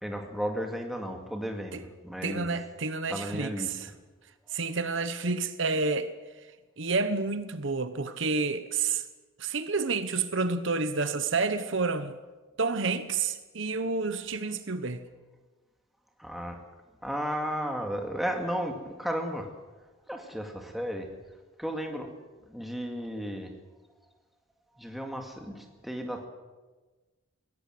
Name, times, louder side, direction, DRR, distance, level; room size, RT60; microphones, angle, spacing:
voice 1, 0.0-2.5 3.1-3.7 4.5-4.6 16.2-16.6 17.0-19.5 20.1-21.1 21.6-22.1 22.5-23.5 24.8-26.3, equal, ahead, 2.3 m, -34 dB
voice 2, 2.2-3.9 4.5-6.1 6.8-9.0 9.4-12.2 12.6-15.0, right 4 dB, 60° right, 1.1 m, -29 dB
22.0 x 17.0 x 7.8 m
head